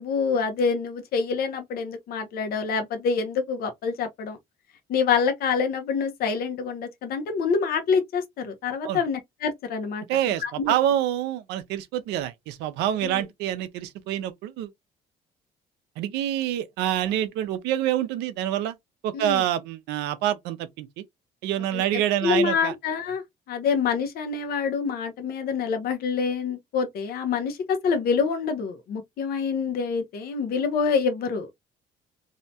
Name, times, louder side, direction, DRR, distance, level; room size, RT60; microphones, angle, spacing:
voice 1, 0.0-4.4 4.9-10.0 10.4-10.7 13.0-13.2 19.1-19.4 21.7-23.2 23.5-31.5, left 5 dB, 65° left, 0.7 m, -26 dB
voice 2, 10.1-14.7 16.0-18.8 19.0-21.0 21.4-22.7, right 12 dB, 90° right, 0.5 m, -26 dB
2.7 x 2.2 x 2.7 m
cardioid pair, 110°, 17 cm